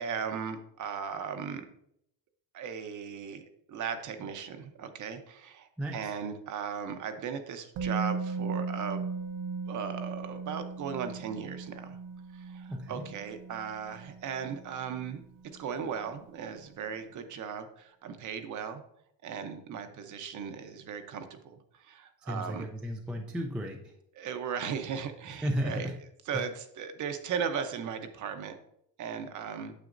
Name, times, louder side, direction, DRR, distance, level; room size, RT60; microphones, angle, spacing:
voice 1, 0.0-1.6 2.5-9.1 9.7-12.0 12.3-15.2 15.5-18.8 19.2-22.7 24.1-25.9 26.3-28.6 29.0-29.7, right 7 dB, 40° right, 8 dB, 0.8 m, -37 dB
Musical instrument, 7.8-15.7 15.9-16.1, right 4 dB, 70° right, 0.9 m, -38 dB
voice 2, 12.7-13.0 22.3-23.8 25.4-25.9, equal, ahead, 2 dB, 0.4 m, -33 dB
9.2 x 7.3 x 2.6 m, 0.73 s
cardioid pair, 170°, 47 cm